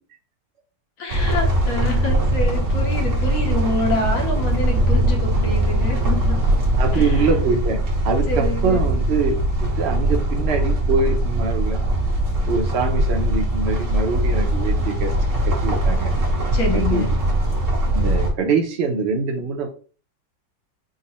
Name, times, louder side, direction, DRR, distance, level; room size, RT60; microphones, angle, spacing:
voice 1, 1.0-6.4 6.9-7.3 8.3-8.8 16.5-17.1, left 2 dB, 60° left, 2 dB, 1.2 m, -27 dB
sound 1, 1.1-18.3, right 1 dB, 50° right, 1.4 m, -21 dB
voice 2, 6.8-7.8 8.0-9.3 9.6-11.8 12.5-15.1 15.5-16.1 16.7-17.2 17.9-19.7, right 4 dB, 70° right, 3 dB, 0.6 m, -24 dB
3.8 x 2.0 x 4.0 m, 0.38 s
omnidirectional pair, 1.8 m